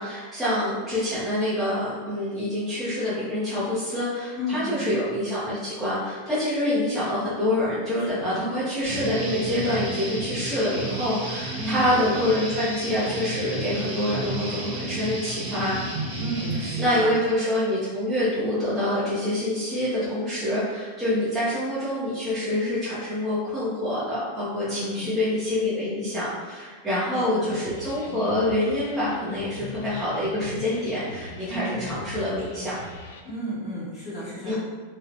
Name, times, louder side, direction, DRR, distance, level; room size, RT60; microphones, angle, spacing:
voice 1, 0.0-15.8 16.8-32.8 34.5-34.6, left 1 dB, 5° right, -12 dB, 0.6 m, -26 dB
voice 2, 4.4-4.8 8.0-8.4 11.5-11.9 16.2-17.2 24.6-25.1 27.1-27.6 31.4-31.7 33.2-34.6, equal, 20° left, -11 dB, 1.4 m, -33 dB
Guitar, 8.8-16.9, right 2 dB, 50° right, 0.9 m, -32 dB
sound 1, 27.5-33.2, left 3 dB, 75° left, 0.3 m, -41 dB
2.7 x 2.0 x 2.5 m, 1.4 s
supercardioid pair, 145°, 0 cm